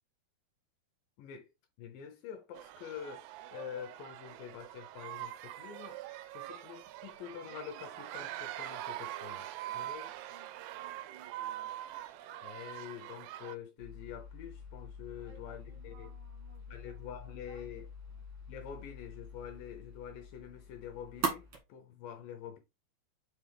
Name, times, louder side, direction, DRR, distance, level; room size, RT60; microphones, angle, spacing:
voice 1, 1.2-1.5 1.8-9.5 9.7-10.1 12.4-16.1 16.7-17.9 18.5-22.6, left 8 dB, 75° left, 2.2 m, -46 dB
sound 1, 2.6-13.6, right 13 dB, 85° right, 2.7 m, -44 dB
voice 2, 9.6-9.9 10.3-11.7 15.2-17.2 17.5-18.2, right 5 dB, 60° right, 1.0 m, -61 dB
sound 2, 13.8-21.6, right 2 dB, 45° right, 2.1 m, -43 dB
5.4 x 5.3 x 3.4 m
omnidirectional pair, 4.8 m